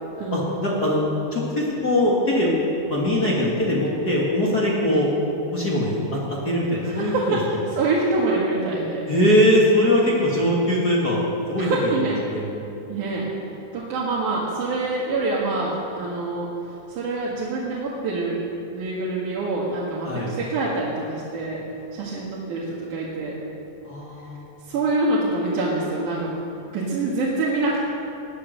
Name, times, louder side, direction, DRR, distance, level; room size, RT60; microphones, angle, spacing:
voice 1, 0.3-2.5 2.9-5.1 5.5-7.4 9.1-11.2 11.5-11.9 12.3-12.5 20.1-20.3 23.8-24.4, left 1 dB, 30° left, -5 dB, 2.3 m, -21 dB
voice 2, 6.8-9.1 11.6-12.2 12.9-13.3 13.7-16.5 16.9-18.4 18.7-21.6 21.9-23.4 24.6-26.3 26.7-27.8, right 2 dB, 70° right, -6 dB, 3.2 m, -25 dB
19.0 x 10.0 x 6.7 m, 2.9 s
omnidirectional pair, 3.8 m